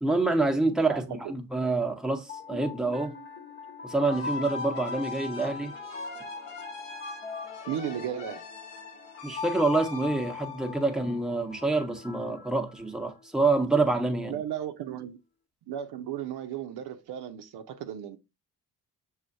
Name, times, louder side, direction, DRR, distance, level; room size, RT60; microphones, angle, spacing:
voice 1, 0.0-3.1 3.8-5.7 9.2-14.4, right 3 dB, ahead, 0.9 m, -27 dB
voice 2, 0.8-1.2 7.7-8.5 14.3-15.2 15.7-18.2, right 10 dB, 65° right, 0.7 m, -35 dB
sound 1, 2.1-13.2, left 4 dB, 25° left, 0.9 m, -40 dB
sound 2, 4.0-11.5, left 5 dB, 80° left, 1.2 m, -44 dB
6.3 x 2.5 x 2.6 m
supercardioid pair, 50°, 42 cm